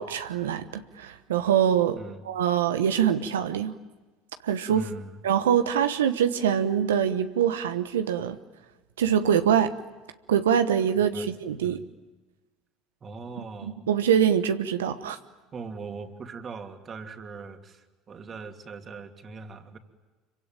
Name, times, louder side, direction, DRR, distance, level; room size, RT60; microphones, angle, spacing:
voice 1, 0.0-2.0 2.2-3.7 4.4-4.9 5.2-8.4 9.0-9.8 10.3-11.8 13.6-15.2, right 9 dB, 85° right, 9 dB, 1.1 m, -24 dB
voice 2, 4.7-5.2 10.9-11.3 11.6-11.8 13.0-13.9 15.5-19.8, right 4 dB, 35° right, 5 dB, 3.0 m, -41 dB
26.5 x 24.0 x 9.1 m, 1.2 s
hypercardioid pair, 70°, 0 cm